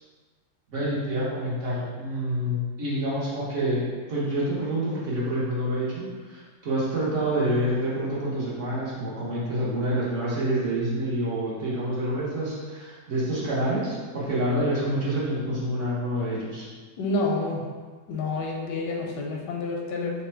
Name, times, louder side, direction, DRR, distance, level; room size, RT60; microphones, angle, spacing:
voice 1, 0.7-3.8 4.1-16.7, right 1 dB, 55° right, -8 dB, 1.1 m, -27 dB
voice 2, 17.0-17.6 18.1-20.1, left 2 dB, 85° left, 0 dB, 1.3 m, -28 dB
3.3 x 2.2 x 4.3 m, 1.5 s
omnidirectional pair, 1.8 m